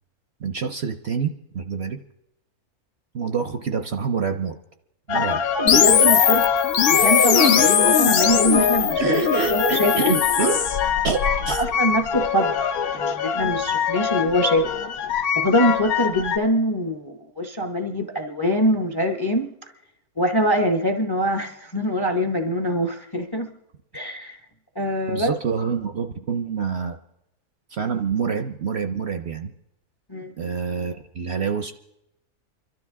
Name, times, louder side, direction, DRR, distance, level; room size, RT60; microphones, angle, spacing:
voice 1, 0.4-2.0 3.1-4.6 5.1-5.4 9.0-10.6 11.0-11.6 25.1-27.0 27.7-29.5 30.4-31.7, right 6 dB, 55° right, 7 dB, 0.8 m, -26 dB
sound 1, 5.1-16.4, left 7 dB, 80° left, 1.3 m, -24 dB
voice 2, 5.5-6.5 6.9-9.0 9.5-10.1 11.6-12.5 12.9-14.7 15.4-19.5 20.2-23.5 23.9-24.4 24.8-25.3 30.1-30.3, equal, 25° left, 6 dB, 0.6 m, -23 dB
sound 2, 5.7-10.8, left 7 dB, 55° left, 0.8 m, -19 dB
28.5 x 12.5 x 3.6 m, 0.88 s
omnidirectional pair, 1.6 m